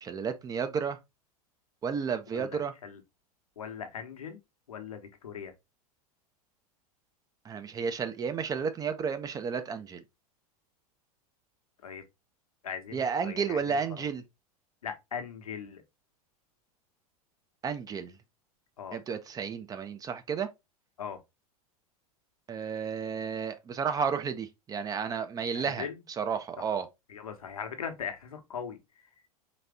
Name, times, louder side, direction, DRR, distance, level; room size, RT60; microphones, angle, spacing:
voice 1, 0.0-1.0 1.8-2.7 7.4-10.0 12.9-14.2 17.6-18.2 18.9-20.5 22.5-26.9, right 6 dB, 20° right, 0.5 m, -32 dB
voice 2, 2.3-3.0 3.6-4.4 4.7-5.5 11.8-12.0 12.6-13.8 14.8-15.8 18.8-19.0 21.0-21.2 25.5-26.0 26.6-26.7 27.1-28.8, left 7 dB, 70° left, 1.0 m, -39 dB
4.1 x 3.3 x 3.4 m
figure-of-eight pair, 85°, 19 cm